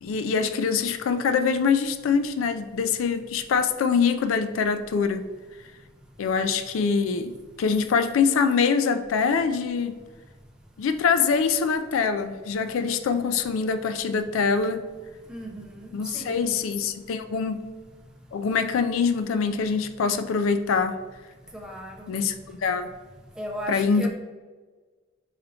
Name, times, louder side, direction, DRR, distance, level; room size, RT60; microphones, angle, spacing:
voice 1, 0.0-5.2 6.2-7.3 7.6-10.0 10.8-14.9 15.9-17.7 18.3-21.0 22.1-22.3 22.6-22.9 23.7-24.1, left 5 dB, 90° left, 9 dB, 0.3 m, -24 dB
voice 2, 15.3-16.6 21.5-22.1 23.4-24.1, equal, 5° right, -1 dB, 0.6 m, -36 dB
4.3 x 4.1 x 2.7 m, 1.3 s
head